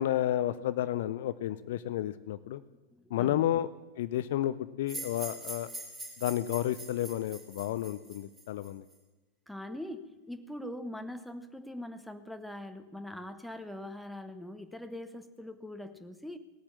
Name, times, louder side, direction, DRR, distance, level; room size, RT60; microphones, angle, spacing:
voice 1, 0.0-2.6 3.1-3.7 4.0-5.7 6.2-8.8, left 12 dB, 55° left, 15 dB, 0.5 m, -31 dB
voice 2, 2.9-3.4 9.5-16.4, left 1 dB, ahead, 8 dB, 1.0 m, -42 dB
sound 1, 4.9-8.9, right 2 dB, 15° right, 3.5 m, -43 dB
18.5 x 8.7 x 7.2 m, 1.1 s
figure-of-eight pair, 90°, 0 cm